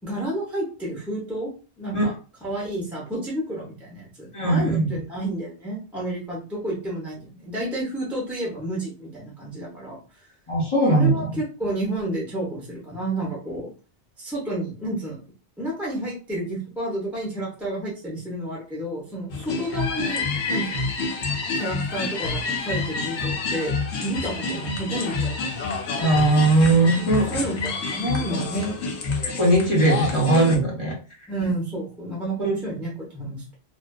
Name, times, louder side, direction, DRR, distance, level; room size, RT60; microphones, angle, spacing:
voice 1, 0.0-1.5 1.8-2.1 2.4-10.3 10.9-13.7 14.2-15.2 15.6-20.9 21.5-25.6 27.0-28.8 31.3-33.5, right 1 dB, ahead, -4 dB, 0.6 m, -30 dB
voice 2, 4.3-5.0 10.5-11.4 26.0-27.3 29.2-30.9 32.4-32.5, right 2 dB, 35° left, -5 dB, 0.6 m, -19 dB
sound 1, 19.3-30.6, left 3 dB, 85° left, 0.9 m, -28 dB
2.5 x 2.3 x 2.2 m, 0.36 s
omnidirectional pair, 1.1 m